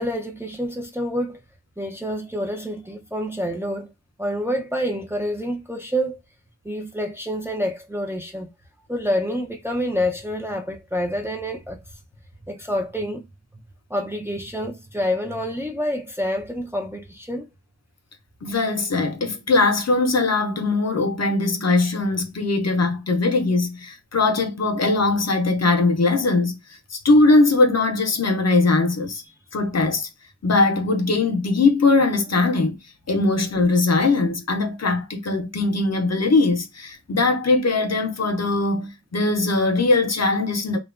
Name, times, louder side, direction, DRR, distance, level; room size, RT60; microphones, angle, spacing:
voice 1, 0.0-1.4 1.8-3.9 4.2-6.2 6.6-8.5 8.9-11.8 12.5-13.3 13.9-17.5, equal, 10° right, 0.4 m, -27 dB
voice 2, 18.4-26.6 26.9-29.2 29.5-30.1 30.4-32.8 33.1-40.8, left 3 dB, 55° left, 0.6 m, -20 dB
2.8 x 2.2 x 2.3 m
wide cardioid pair, 70°, 31 cm